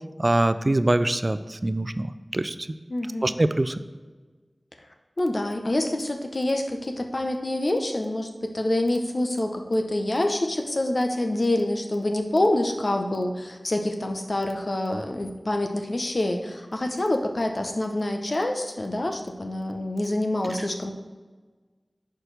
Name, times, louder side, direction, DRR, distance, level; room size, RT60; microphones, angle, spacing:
voice 1, 0.2-2.1 2.3-2.5 3.2-3.8, right 1 dB, 40° right, 12 dB, 0.3 m, -23 dB
voice 2, 2.9-3.4 5.2-20.9, left 1 dB, 60° left, 4 dB, 0.8 m, -26 dB
11.0 x 4.6 x 3.3 m, 1.4 s
wide cardioid pair, 45°, 0 cm